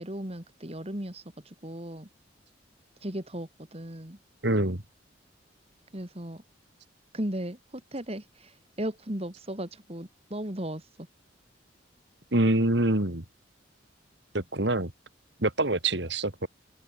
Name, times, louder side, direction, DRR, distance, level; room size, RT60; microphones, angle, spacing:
voice 1, 0.0-2.1 3.0-4.2 5.9-6.4 7.1-11.1, right 1 dB, 30° right, 3.1 m, -36 dB
voice 2, 4.4-4.8 12.3-13.2 14.3-14.9 15.4-16.5, right 1 dB, 60° right, 2.9 m, -25 dB
open air
head